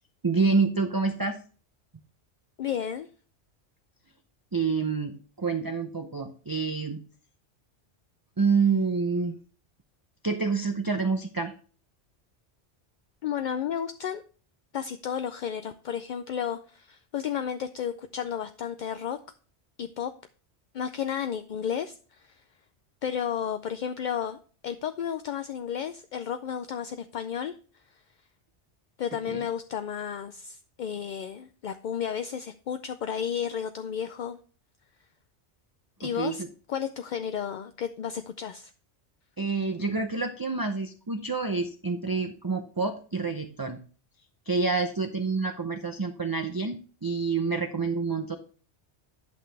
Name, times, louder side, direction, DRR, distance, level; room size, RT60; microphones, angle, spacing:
voice 1, 0.2-1.4 4.5-7.0 8.4-9.4 10.2-11.5 29.1-29.4 36.0-36.5 39.4-43.8 44.5-48.4, right 4 dB, 25° right, 6 dB, 0.5 m, -28 dB
voice 2, 2.6-3.1 13.2-14.2 14.7-19.2 19.8-20.1 20.7-22.4 23.0-24.4 24.6-27.5 29.0-34.4 36.0-36.4 36.7-38.7, left 8 dB, 60° left, 9 dB, 0.5 m, -32 dB
10.5 x 6.0 x 3.3 m, 0.40 s
omnidirectional pair, 1.2 m